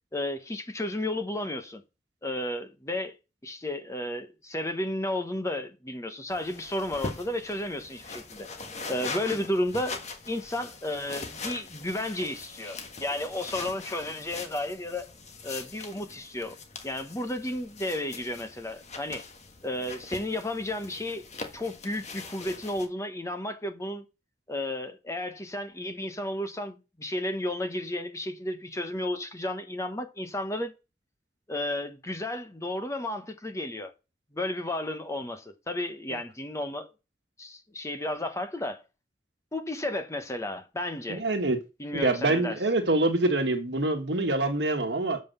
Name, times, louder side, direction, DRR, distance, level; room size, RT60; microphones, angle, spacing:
voice 1, 0.1-1.8 2.2-3.1 3.4-8.5 8.9-10.0 10.3-15.0 15.4-16.6 16.8-19.3 19.6-21.2 21.5-24.0 24.5-30.7 31.5-33.9 34.3-36.9 37.4-38.8 39.5-41.2 41.8-42.6, left 1 dB, 15° left, 1.0 m, -33 dB
sound 1, 6.3-22.9, left 3 dB, 40° left, 1.5 m, -42 dB
voice 2, 41.1-41.6 41.9-45.2, right 2 dB, 70° right, 1.6 m, -25 dB
7.7 x 5.5 x 6.7 m
head